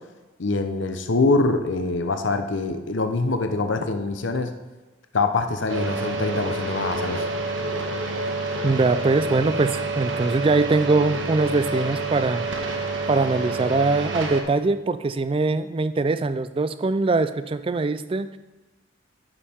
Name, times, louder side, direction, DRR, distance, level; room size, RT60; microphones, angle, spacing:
voice 1, 0.4-4.5 5.1-7.2, left 3 dB, 65° left, 7 dB, 0.7 m, -24 dB
sound 1, 5.7-14.4, right 2 dB, 65° right, 1.2 m, -28 dB
voice 2, 8.6-12.5 13.1-18.4, right 3 dB, 25° right, 12 dB, 0.3 m, -22 dB
11.0 x 5.6 x 4.3 m, 1.2 s
head